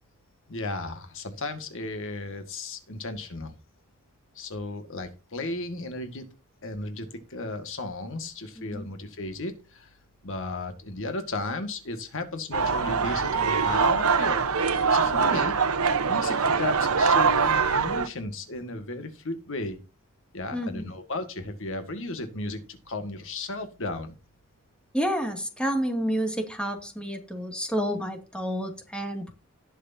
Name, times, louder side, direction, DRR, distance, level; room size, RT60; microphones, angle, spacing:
voice 1, 0.5-3.5 4.3-6.2 6.6-9.9 10.2-14.4 14.7-15.6 16.1-19.8 20.3-24.1, left 2 dB, 65° left, 7 dB, 1.8 m, -34 dB
voice 2, 8.6-8.9 15.1-15.3 20.5-20.9 24.9-29.3, equal, 5° left, 4 dB, 2.2 m, -30 dB
sound 1, 12.5-18.1, right 5 dB, 85° right, 1.0 m, -23 dB
18.5 x 6.7 x 2.7 m, 0.31 s
head